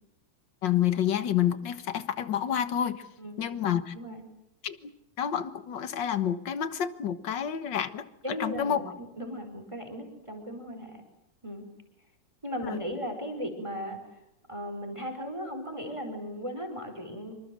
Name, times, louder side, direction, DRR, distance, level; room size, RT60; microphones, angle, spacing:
voice 1, 0.6-3.0 3.4-3.9 4.6-4.9 5.2-8.0 8.4-8.8 12.6-12.8, left 9 dB, 60° left, 11 dB, 2.0 m, -29 dB
voice 2, 3.2-3.6 3.9-4.2 8.2-11.0 11.4-11.7 12.4-14.0 14.5-17.4, equal, 15° right, 5 dB, 4.8 m, -37 dB
26.5 x 26.0 x 7.8 m, 0.88 s
omnidirectional pair, 2.2 m